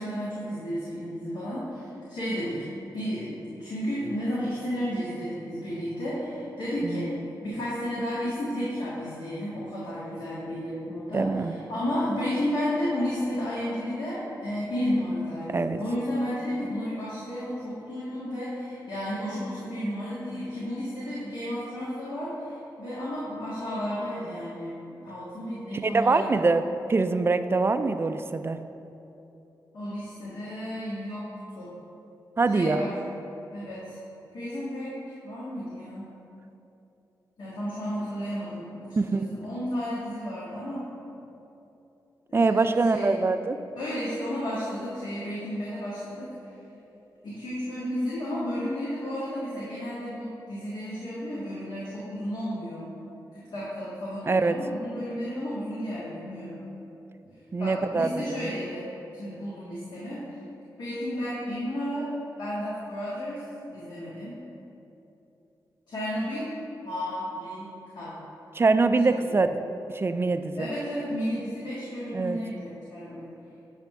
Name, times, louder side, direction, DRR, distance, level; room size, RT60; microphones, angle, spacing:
voice 1, 0.0-2.7 2.9-24.8 25.0-26.3 29.7-31.7 32.5-32.9 33.5-34.0 34.3-36.1 37.4-40.9 42.3-43.2 43.7-46.3 47.2-52.9 53.3-56.6 57.6-60.2 60.8-62.1 62.4-64.4 65.9-66.6 66.8-68.2 69.1-69.3 70.6-73.3, equal, 75° left, -9 dB, 1.7 m, -32 dB
voice 2, 11.1-11.5 15.5-15.8 25.8-26.6 26.9-28.6 32.4-32.8 39.0-39.3 42.3-43.6 54.3-54.6 57.5-58.5 68.5-69.6 69.9-70.7 72.1-72.4, right 3 dB, 30° right, 10 dB, 0.4 m, -24 dB
9.7 x 3.5 x 5.7 m, 2.9 s
cardioid pair, 80°, 8 cm